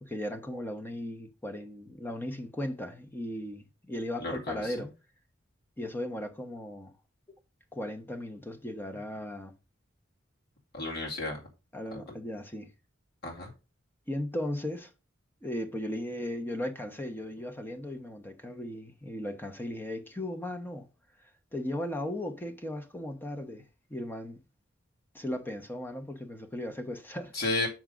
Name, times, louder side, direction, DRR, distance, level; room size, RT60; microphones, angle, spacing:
voice 1, 0.0-4.9 5.8-6.9 7.7-9.5 11.7-12.7 14.1-14.9 15.4-20.9 21.5-23.6 23.9-24.4 25.1-27.3, left 1 dB, 10° left, 1.0 m, -36 dB
voice 2, 4.2-4.9 10.7-11.4 11.9-12.0 13.2-13.5 27.3-27.7, left 2 dB, 55° left, 2.4 m, -33 dB
7.1 x 6.1 x 3.8 m
head